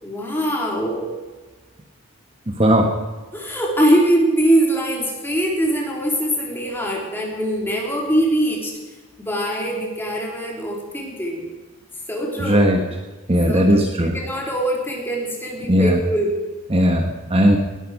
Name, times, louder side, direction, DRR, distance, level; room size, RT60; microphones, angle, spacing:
voice 1, 0.0-1.1 3.3-8.8 9.2-11.4 12.1-12.7 13.5-16.3, right 1 dB, 10° left, -2 dB, 3.4 m, -22 dB
voice 2, 2.6-2.9 12.4-12.8 13.3-14.1 15.7-15.9 16.7-17.6, equal, 25° right, 3 dB, 1.3 m, -17 dB
20.0 x 12.0 x 4.8 m, 1.2 s
head